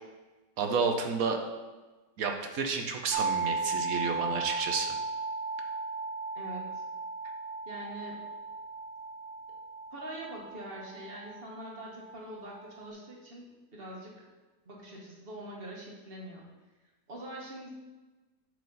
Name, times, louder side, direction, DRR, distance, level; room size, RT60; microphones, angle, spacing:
voice 1, 0.6-1.4 2.2-5.0, right 5 dB, 65° right, 4 dB, 1.1 m, -31 dB
sound 1, 3.1-12.9, right 4 dB, 90° right, 0.5 m, -36 dB
voice 2, 6.3-6.8 7.6-8.3 9.9-14.3 14.6-16.4 17.1-17.7, right 1 dB, 35° right, -2 dB, 1.6 m, -44 dB
9.2 x 4.8 x 4.0 m, 1.2 s
omnidirectional pair, 1.7 m